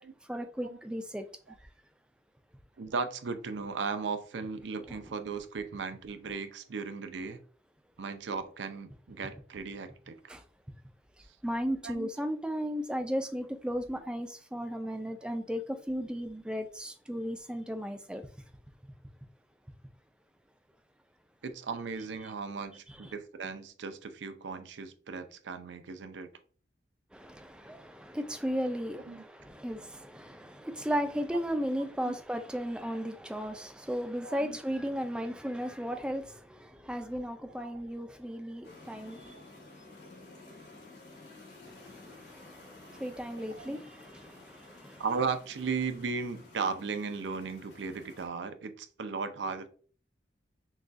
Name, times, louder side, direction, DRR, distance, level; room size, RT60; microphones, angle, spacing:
voice 1, 0.3-1.2 4.9-5.0 10.3-10.4 11.4-18.3 27.1-39.4 41.7-45.0, equal, 5° right, 0.3 m, -35 dB
voice 2, 2.8-7.4 8.0-10.3 11.8-12.1 21.4-26.3 29.0-29.2 31.3-31.5 32.0-32.2 34.2-34.6 35.9-36.0 37.5-37.8 39.3-39.4 43.3-43.8 45.0-49.7, right 5 dB, 85° right, 0.5 m, -36 dB
sound 1, 38.6-48.3, left 2 dB, 80° left, 1.9 m, -53 dB
6.1 x 2.3 x 2.5 m
head